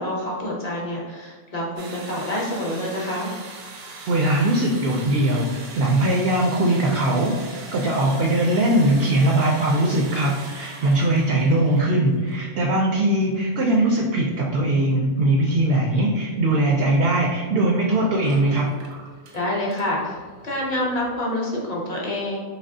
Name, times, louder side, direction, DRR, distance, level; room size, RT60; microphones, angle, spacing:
voice 1, 0.0-3.3 19.3-20.2 20.4-22.4, left 1 dB, 40° left, -3 dB, 0.7 m, -27 dB
sound 1, 1.8-11.9 12.3-12.6 13.0-13.1 15.7-15.8 18.1-21.2, right 3 dB, 80° right, 1.1 m, -41 dB
voice 2, 4.1-18.7, right 1 dB, 65° right, -1 dB, 0.6 m, -20 dB
4.1 x 2.9 x 2.6 m, 1.5 s
omnidirectional pair, 1.4 m